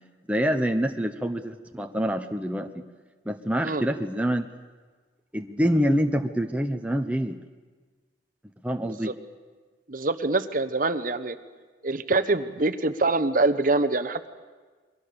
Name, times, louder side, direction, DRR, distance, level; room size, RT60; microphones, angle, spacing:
voice 1, 0.3-2.9 3.2-4.5 5.3-7.4 8.6-9.1, equal, 5° right, 5 dB, 0.9 m, -26 dB
voice 2, 9.9-11.4 11.8-14.3, right 2 dB, 45° right, 10 dB, 1.0 m, -24 dB
29.0 x 22.5 x 7.0 m, 1.4 s
head